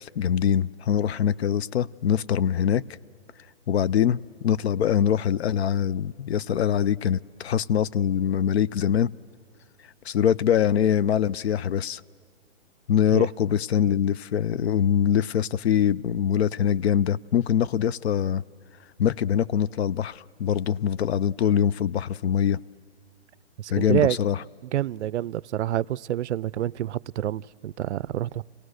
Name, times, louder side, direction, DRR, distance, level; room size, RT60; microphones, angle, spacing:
voice 1, 0.0-2.8 3.7-9.1 10.1-12.0 12.9-18.4 19.0-22.6 23.7-24.4, left 9 dB, 65° left, 20 dB, 0.5 m, -23 dB
voice 2, 23.6-24.2 24.7-28.4, right 12 dB, 80° right, 22 dB, 0.5 m, -27 dB
29.0 x 18.0 x 6.4 m, 2.3 s
hypercardioid pair, 165°, 34 cm